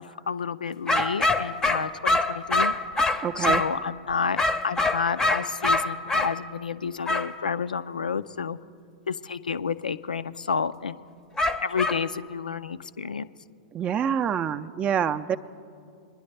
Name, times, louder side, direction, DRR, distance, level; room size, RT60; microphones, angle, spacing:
voice 1, 0.0-2.7 3.1-8.6 9.1-11.0 11.6-13.3, left 6 dB, 85° left, 13 dB, 0.4 m, -30 dB
sound 1, 0.9-3.8 4.4-6.3 7.0-7.3 11.4-12.0, left 2 dB, 10° left, 0.6 m, -24 dB
voice 2, 3.2-3.6 13.7-15.4, right 8 dB, 25° right, 11 dB, 0.5 m, -26 dB
22.0 x 10.5 x 3.3 m, 2.4 s
figure-of-eight pair, 105°, 4 cm